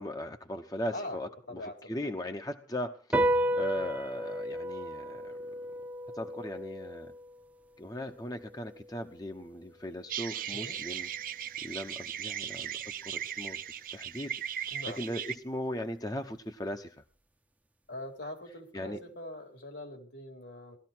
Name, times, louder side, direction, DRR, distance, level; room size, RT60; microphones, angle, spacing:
voice 1, 0.0-5.4 6.1-7.1 7.8-11.1 11.6-12.7 13.0-13.6 13.9-14.4 15.0-16.9 18.7-19.0, left 1 dB, 20° left, 6 dB, 0.9 m, -38 dB
voice 2, 1.5-2.1 10.5-10.8 14.7-15.0 17.9-20.8, left 1 dB, 75° left, 3 dB, 4.2 m, -42 dB
sound 1, 3.1-9.8, right 1 dB, 10° right, 0.8 m, -34 dB
sound 2, 10.1-15.4, right 9 dB, 50° right, 0.8 m, -37 dB
19.0 x 13.5 x 4.5 m, 0.37 s
head